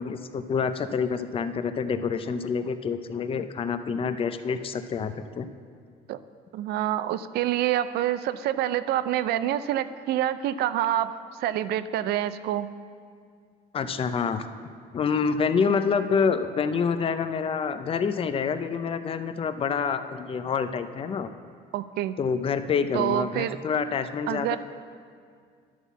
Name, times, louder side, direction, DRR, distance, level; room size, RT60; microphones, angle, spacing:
voice 1, 0.0-5.5 13.7-14.4 14.9-21.3 22.2-24.6, left 6 dB, 35° left, 10 dB, 0.5 m, -27 dB
voice 2, 6.5-11.1 11.4-12.7 21.7-22.2 22.9-23.6 24.3-24.6, right 12 dB, 70° right, 13 dB, 0.4 m, -27 dB
11.0 x 4.2 x 7.0 m, 2.2 s
cardioid pair, 110°, 17 cm